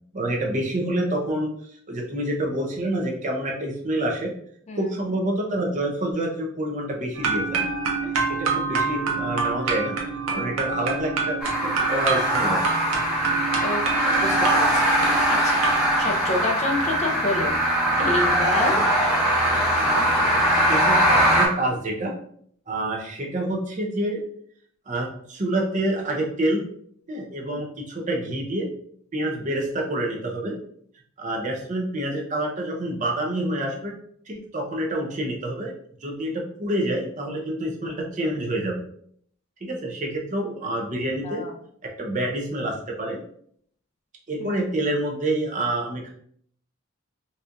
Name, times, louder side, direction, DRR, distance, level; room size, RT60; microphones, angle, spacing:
voice 1, 0.1-1.5 1.9-4.3 4.8-7.7 8.0-8.1 8.4-10.0 10.3-11.4 11.9-12.6 18.7-18.8 20.7-22.1 22.7-24.2 24.9-26.6 27.1-28.7 29.1-30.6 31.2-33.9 34.3-35.7 36.0-38.8 39.6-41.4 42.0-43.2 44.3-46.1, right 1 dB, 35° right, 0 dB, 0.6 m, -27 dB
sound 1, 7.2-16.1, right 4 dB, 85° right, 0.7 m, -27 dB
voice 2, 10.3-10.8 13.6-15.6 16.0-17.5 18.0-18.9 41.2-41.5 44.4-44.6, left 2 dB, 30° left, 1 dB, 0.5 m, -29 dB
sound 2, 11.4-21.5, right 1 dB, 5° right, 0.7 m, -21 dB
4.1 x 2.4 x 2.5 m, 0.64 s
head